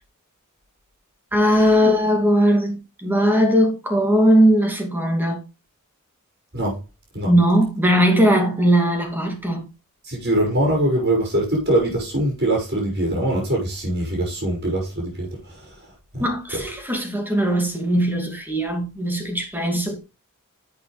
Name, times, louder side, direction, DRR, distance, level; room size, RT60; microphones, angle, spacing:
voice 1, 1.3-5.4 7.2-9.7 16.2-20.0, equal, 10° right, 2.5 m, -19 dB
voice 2, 10.0-15.7 16.1-16.3 16.5-16.6, right 1 dB, 50° right, 5.7 m, -23 dB
11.0 x 8.0 x 3.3 m
head